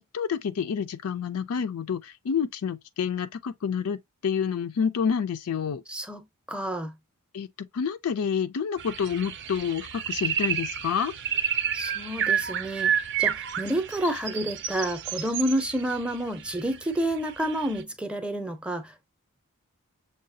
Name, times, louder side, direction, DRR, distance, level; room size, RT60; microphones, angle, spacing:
voice 1, 0.1-5.8 7.3-11.1, left 7 dB, 70° left, 0.4 m, -28 dB
voice 2, 5.9-6.9 11.7-19.1, right 1 dB, 5° right, 0.6 m, -29 dB
sound 1, 8.8-17.8, right 9 dB, 50° right, 0.5 m, -30 dB
6.5 x 2.3 x 2.6 m
head